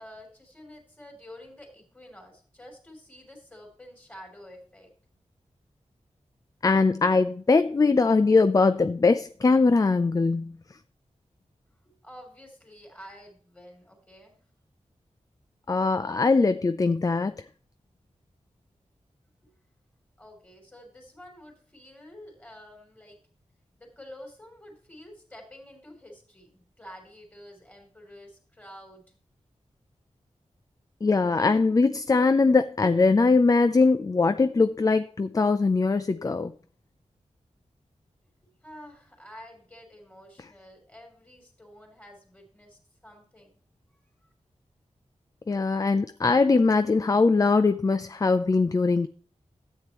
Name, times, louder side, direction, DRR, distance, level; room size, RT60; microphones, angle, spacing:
voice 1, 0.0-4.9 11.8-14.4 19.4-19.5 20.2-23.2 23.8-29.1 38.4-43.6 44.2-44.3, equal, 15° left, 3.3 m, -49 dB
voice 2, 6.6-10.5 15.7-17.3 31.0-36.5 45.5-49.1, left 3 dB, 30° left, 0.4 m, -21 dB
13.0 x 8.4 x 3.0 m
wide cardioid pair, 110°, 12 cm